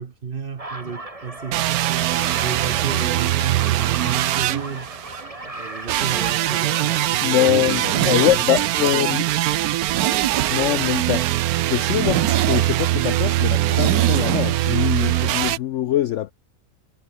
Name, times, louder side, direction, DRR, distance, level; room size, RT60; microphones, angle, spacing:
voice 1, 0.0-1.7 2.4-4.9 5.4-7.4 7.7-8.5, right 6 dB, 40° right, 1.0 m, -32 dB
sound 1, 0.6-7.2, right 2 dB, 20° right, 2.8 m, -35 dB
sound 2, 1.5-5.2 5.9-15.6, right 15 dB, 70° right, 1.0 m, -22 dB
voice 2, 7.2-9.5 10.5-16.3, left 12 dB, 80° left, 0.6 m, -23 dB
Zipper (clothing), 7.7-10.9 11.2-11.3 11.6-11.7 12.0-14.4 14.7-14.8, right 11 dB, 85° right, 1.7 m, -26 dB
omnidirectional pair, 1.8 m